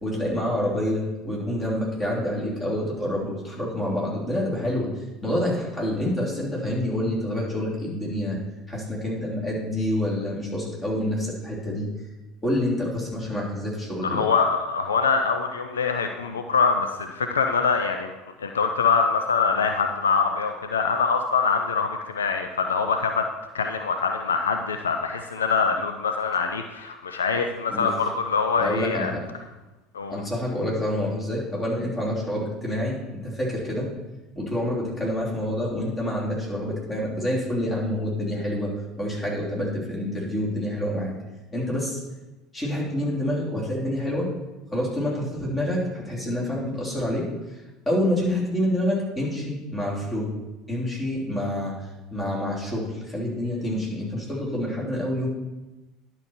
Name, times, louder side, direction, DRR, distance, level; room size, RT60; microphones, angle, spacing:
voice 1, 0.0-4.9 5.2-8.4 8.7-11.9 12.4-14.3 27.7-27.9 28.6-29.2 30.1-33.9 34.3-38.7 39.0-41.1 41.5-42.0 42.5-44.3 44.7-47.6 47.8-50.3 50.7-55.3, left 1 dB, 15° left, -4 dB, 3.4 m, -27 dB
voice 2, 14.0-18.1 18.4-23.3 23.5-29.1 29.9-30.2, left 5 dB, 75° left, 5 dB, 0.5 m, -24 dB
11.0 x 5.9 x 4.4 m, 1.1 s
figure-of-eight pair, 65°, 0 cm